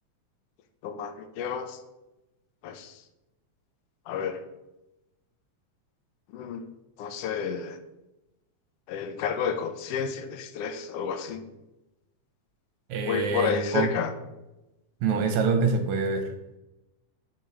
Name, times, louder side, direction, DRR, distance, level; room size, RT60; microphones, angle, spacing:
voice 1, 0.8-1.8 2.6-2.9 4.1-4.4 6.3-6.7 7.0-7.8 8.9-11.5 13.1-14.1, left 6 dB, 75° left, 8 dB, 1.4 m, -30 dB
voice 2, 12.9-13.9 15.0-16.3, right 4 dB, 75° right, 7 dB, 2.2 m, -25 dB
7.8 x 4.4 x 5.9 m, 0.97 s
omnidirectional pair, 3.3 m